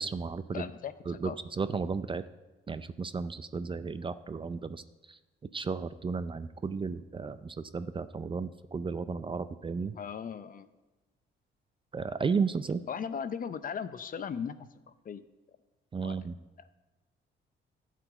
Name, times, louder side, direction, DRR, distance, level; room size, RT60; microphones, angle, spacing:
voice 1, 0.0-0.7 1.1-2.2 2.7-4.8 5.1-5.2 5.5-9.9 11.9-12.8 15.9-16.3, right 5 dB, 25° right, 13 dB, 0.4 m, -34 dB
voice 2, 0.5-0.9 1.2-1.4 9.9-10.7 12.9-15.2 16.0-16.2 16.6-16.7, left 7 dB, 45° left, 13 dB, 0.6 m, -38 dB
12.0 x 5.1 x 7.9 m, 1.1 s
cardioid pair, 90°, 20 cm